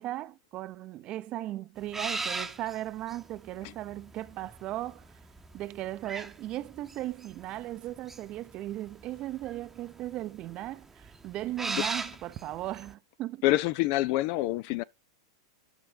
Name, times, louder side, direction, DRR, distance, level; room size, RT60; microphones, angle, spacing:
voice 1, 0.0-5.0 5.5-13.4, right 15 dB, 35° right, 0.7 m, -37 dB
sound 1, 1.8-12.9, right 3 dB, 10° right, 1.0 m, -39 dB
voice 2, 13.4-14.8, left 17 dB, 45° left, 0.5 m, -26 dB
11.0 x 5.6 x 5.1 m
figure-of-eight pair, 95°, 2 cm